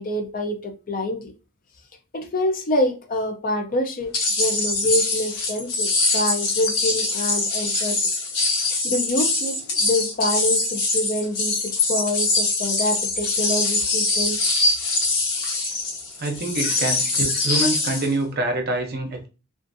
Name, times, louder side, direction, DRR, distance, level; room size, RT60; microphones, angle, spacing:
voice 1, 0.0-1.3 2.1-8.0 8.8-14.5 16.6-16.7, left 1 dB, 40° left, 0.5 m, -26 dB
sound 1, 4.1-18.1, left 3 dB, 85° left, 1.1 m, -23 dB
voice 2, 16.2-19.3, right 2 dB, 45° right, 0.6 m, -26 dB
2.5 x 2.4 x 2.5 m
head